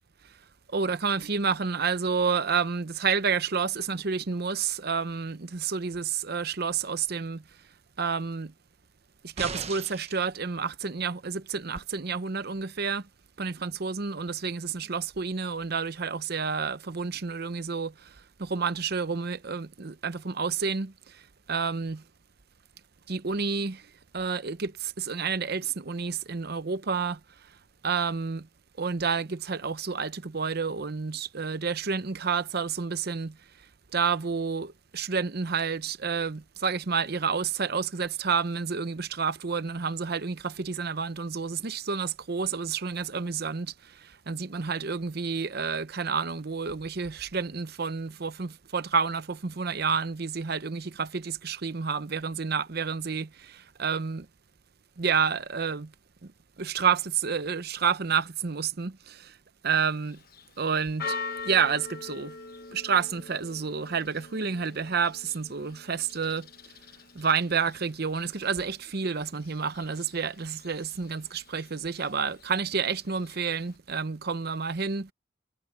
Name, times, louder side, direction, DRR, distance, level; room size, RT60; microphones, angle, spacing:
voice 1, 0.7-7.4 8.0-8.5 9.2-13.1 13.4-22.0 23.1-27.2 27.8-28.5 28.8-33.4 33.9-54.3 55.0-55.9 56.2-56.3 56.6-59.4 59.6-60.2 60.6-61.2 61.4-62.4 62.7-66.5 67.1-75.1, right 5 dB, 55° right, 0.8 m, -29 dB
sound 1, 9.4-10.2 11.8-11.9, right 4 dB, 35° right, 1.2 m, -37 dB
Church bell, 59.9-73.8, left 4 dB, 50° left, 1.0 m, -44 dB
head